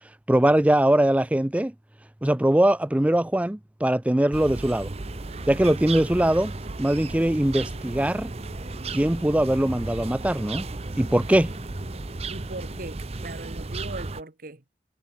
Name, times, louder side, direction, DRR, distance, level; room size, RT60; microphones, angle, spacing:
voice 1, 0.3-1.7 2.2-4.9 5.5-6.5 6.8-8.3 8.9-10.7 11.0-11.5, right 1 dB, 10° right, 0.4 m, -21 dB
sound 1, 4.3-14.2, right 3 dB, 35° right, 0.7 m, -35 dB
sound 2, 5.0-12.9, left 1 dB, 35° left, 2.4 m, -46 dB
voice 2, 12.3-14.6, right 2 dB, 55° right, 1.6 m, -39 dB
head